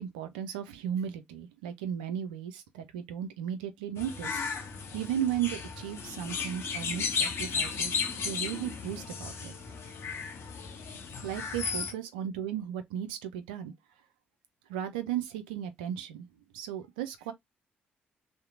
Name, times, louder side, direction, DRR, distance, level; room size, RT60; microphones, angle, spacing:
voice 1, 0.0-4.4 4.9-9.5 10.9-13.7 14.7-16.3 16.5-17.3, right 10 dB, 85° right, 0.4 m, -35 dB
sound 1, 4.0-11.9, left 5 dB, 60° left, 0.7 m, -35 dB
2.8 x 2.1 x 2.4 m
hypercardioid pair, 40°, 5 cm